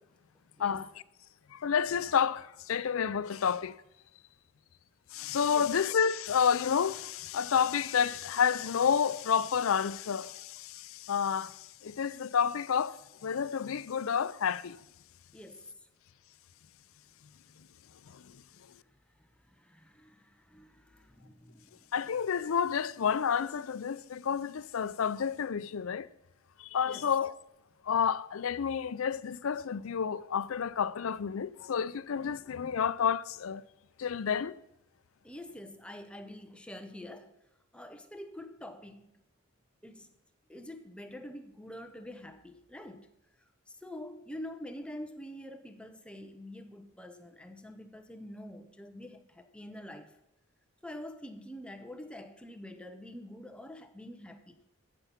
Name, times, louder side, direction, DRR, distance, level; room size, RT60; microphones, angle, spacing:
voice 1, 0.6-0.9 5.5-5.7 15.3-15.7 19.6-21.7 26.8-27.1 35.2-37.3 37.7-39.1 39.8-40.1 40.5-43.1 43.8-50.1 50.8-54.6, left 1 dB, 5° left, 0.8 m, -46 dB
voice 2, 1.5-3.7 5.1-11.5 11.8-14.8 21.9-26.1 26.7-27.4 27.9-33.6 34.0-34.6, left 7 dB, 70° left, 0.5 m, -30 dB
15.0 x 7.0 x 5.9 m
head